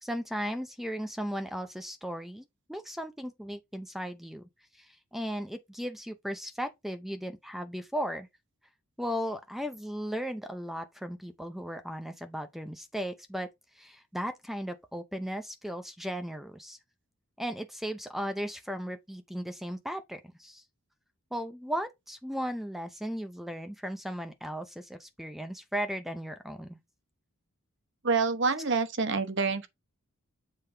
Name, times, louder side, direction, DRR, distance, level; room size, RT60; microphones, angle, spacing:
voice 1, 0.0-4.4 4.8-8.3 9.0-13.5 13.8-16.8 17.4-20.6 21.3-26.8, equal, ahead, 0.5 m, -36 dB
voice 2, 28.0-29.7, right 4 dB, 55° right, 1.0 m, -27 dB
7.4 x 5.3 x 3.3 m
head